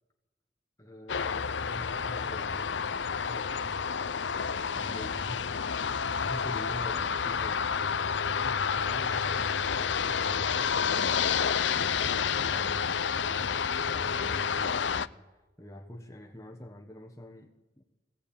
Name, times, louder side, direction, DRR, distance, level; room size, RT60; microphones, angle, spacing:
voice 1, 0.8-4.1 4.7-17.8, equal, 15° left, 2 dB, 1.4 m, -46 dB
sound 1, 1.1-15.1, left 6 dB, 85° left, 0.7 m, -29 dB
23.0 x 17.5 x 8.8 m, 1.1 s
head